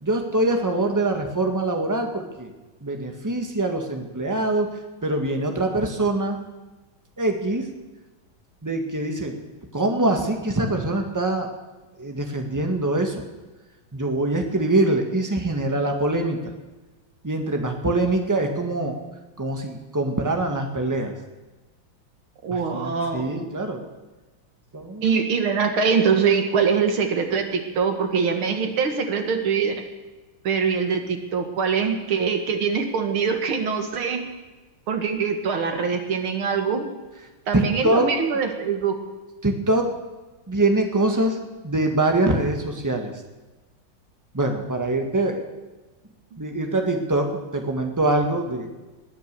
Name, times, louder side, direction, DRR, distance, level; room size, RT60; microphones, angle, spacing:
voice 1, 0.0-2.5 2.8-4.7 5.0-6.4 7.2-7.7 8.6-9.4 9.7-11.5 12.0-13.2 13.9-16.4 17.2-19.0 19.4-21.1 22.5-23.9 24.7-25.2 37.5-38.1 39.4-39.9 40.5-41.4 41.6-43.1 44.3-45.4 46.4-48.7, right 2 dB, 10° right, 3 dB, 1.5 m, -24 dB
voice 2, 22.4-23.5 25.0-29.7 30.4-34.2 34.9-36.9 37.5-38.9, right 6 dB, 80° right, 4 dB, 2.5 m, -23 dB
19.5 x 9.4 x 6.9 m, 1.2 s
omnidirectional pair, 2.3 m